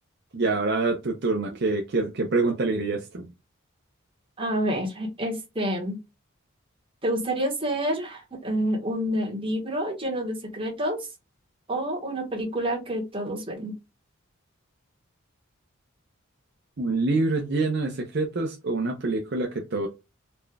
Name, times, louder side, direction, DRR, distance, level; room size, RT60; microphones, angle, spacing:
voice 1, 0.3-3.3 16.8-19.9, right 3 dB, 50° right, 0.6 m, -26 dB
voice 2, 4.4-6.0 7.0-11.1 11.7-13.7, right 1 dB, 25° right, 1.3 m, -28 dB
4.2 x 3.3 x 2.3 m
head